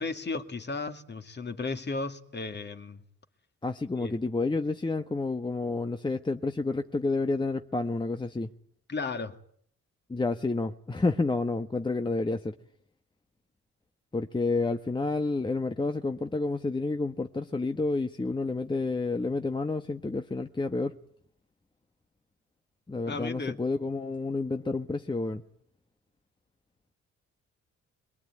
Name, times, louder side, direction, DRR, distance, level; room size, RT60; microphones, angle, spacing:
voice 1, 0.0-3.0 4.0-4.1 8.9-9.4 23.1-23.6, left 3 dB, 35° left, 2.5 m, -34 dB
voice 2, 3.6-8.5 10.1-12.5 14.1-21.0 22.9-25.4, left 3 dB, 15° left, 1.2 m, -29 dB
26.0 x 21.5 x 9.7 m
cardioid pair, 90°, 30 cm